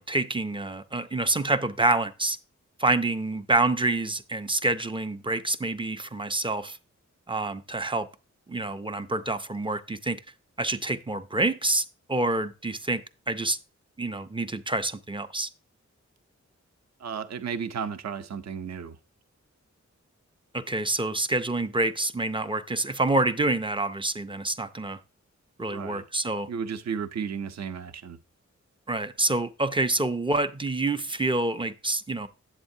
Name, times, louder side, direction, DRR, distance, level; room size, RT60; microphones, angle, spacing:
voice 1, 0.0-2.4 2.8-6.8 7.3-8.1 8.5-10.2 10.6-13.6 14.0-15.5 20.5-25.0 25.6-26.5 28.9-32.3, right 2 dB, 20° right, 0.4 m, -27 dB
voice 2, 17.0-19.0 25.7-26.0 26.5-28.2, right 6 dB, 65° right, 0.6 m, -33 dB
8.1 x 7.8 x 2.7 m
wide cardioid pair, 115°, 29 cm